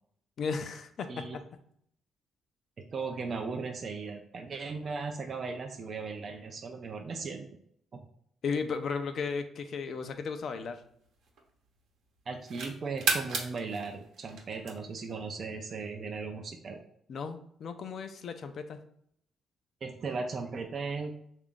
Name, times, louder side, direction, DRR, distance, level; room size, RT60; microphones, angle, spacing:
voice 1, 0.4-1.2 8.4-10.8 17.1-18.8, left 5 dB, 60° left, 8 dB, 0.4 m, -35 dB
voice 2, 2.8-7.5 7.9-8.0 12.3-16.8 19.8-21.1, right 4 dB, 45° right, 4 dB, 0.4 m, -37 dB
sound 1, 10.0-11.7 12.2-15.1, right 4 dB, 75° right, 0.8 m, -35 dB
3.4 x 2.4 x 3.6 m, 0.68 s
cardioid pair, 90°, 0 cm